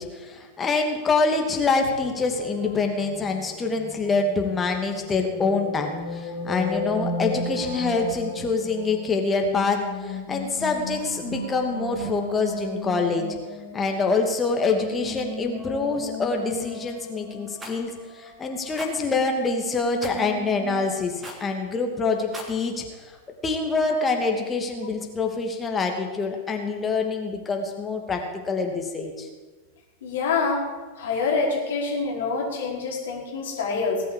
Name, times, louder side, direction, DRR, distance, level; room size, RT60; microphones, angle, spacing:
voice 1, 0.0-13.3 13.7-23.1 23.4-29.3, left 4 dB, 20° left, 3 dB, 2.7 m, -25 dB
sound 1, 1.6-20.8, left 1 dB, 85° left, 5.8 m, -36 dB
Rattle, 17.6-17.8 18.7-18.9 20.0-20.2 21.2-21.5 22.2-22.6, equal, 10° right, 3.0 m, -38 dB
voice 2, 30.0-30.6 31.0-34.0, left 4 dB, 60° left, -2 dB, 5.3 m, -26 dB
20.0 x 8.4 x 8.7 m, 1.3 s
figure-of-eight pair, 90°, 0 cm